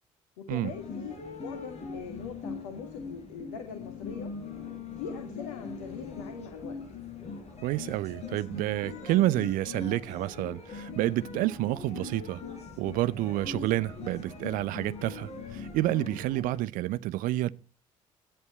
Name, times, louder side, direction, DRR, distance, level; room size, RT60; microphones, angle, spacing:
voice 1, 0.4-4.4 5.0-6.8, left 6 dB, 70° left, 1.9 m, -42 dB
sound 1, 0.6-16.6, left 4 dB, 40° left, 5.6 m, -41 dB
voice 2, 7.6-12.4 12.8-17.5, right 16 dB, 55° right, 0.7 m, -29 dB
17.5 x 11.0 x 4.3 m
figure-of-eight pair, 50°, 17 cm